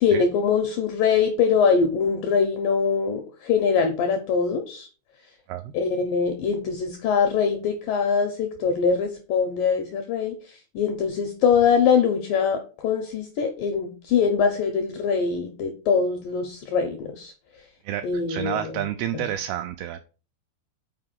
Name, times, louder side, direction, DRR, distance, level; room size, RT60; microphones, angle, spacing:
voice 1, 0.0-4.9 5.7-17.3 18.0-19.3, left 6 dB, 85° left, 5 dB, 1.9 m, -23 dB
voice 2, 17.8-20.0, right 11 dB, 85° right, 9 dB, 2.2 m, -30 dB
6.0 x 4.5 x 5.8 m, 0.36 s
omnidirectional pair, 5.0 m